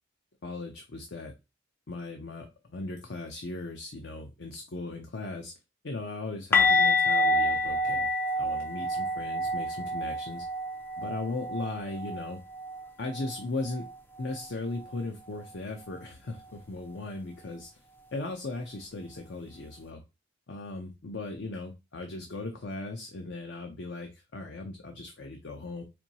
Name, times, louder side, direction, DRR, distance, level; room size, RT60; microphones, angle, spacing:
voice 1, 0.4-1.3 1.9-5.6 5.8-10.4 11.0-12.4 13.0-13.9 14.2-17.7 18.1-20.0 20.5-25.8, left 2 dB, 55° left, 4 dB, 0.6 m, -38 dB
sound 1, 6.5-12.3 12.6-12.8 13.1-13.3 16.5-16.6, left 2 dB, 10° left, 0.4 m, -27 dB
4.4 x 2.6 x 2.8 m, 0.25 s
head